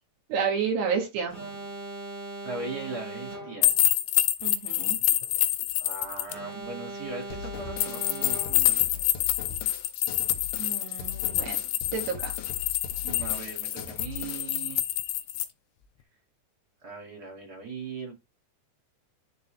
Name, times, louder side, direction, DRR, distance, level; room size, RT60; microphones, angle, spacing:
voice 1, 0.3-1.4 4.4-5.0 10.6-11.6 11.9-12.3, right 6 dB, 65° right, 3.6 m, -30 dB
Alarm, 1.3-3.8 6.3-8.8, right 1 dB, 30° right, 0.9 m, -39 dB
voice 2, 2.4-3.7 5.8-9.3 13.0-14.8 16.8-18.1, right 4 dB, 45° right, 1.3 m, -39 dB
sound 1, 3.6-6.3 7.8-15.5, left 15 dB, 80° left, 3.2 m, -27 dB
sound 2, 7.3-14.6, left 7 dB, 65° left, 2.5 m, -41 dB
11.0 x 4.0 x 3.3 m
omnidirectional pair, 5.5 m